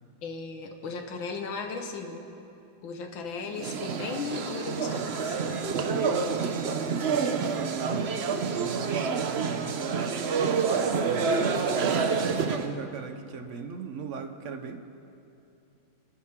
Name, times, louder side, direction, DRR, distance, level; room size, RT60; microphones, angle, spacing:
voice 1, 0.2-2.3 2.8-5.5, left 4 dB, 75° left, 4 dB, 2.0 m, -36 dB
sound 1, 3.5-12.7, right 5 dB, 75° right, 0.6 m, -28 dB
voice 2, 5.9-9.9 11.0-14.8, right 5 dB, 55° right, 7 dB, 0.9 m, -38 dB
25.5 x 11.5 x 3.7 m, 2.7 s
omnidirectional pair, 2.1 m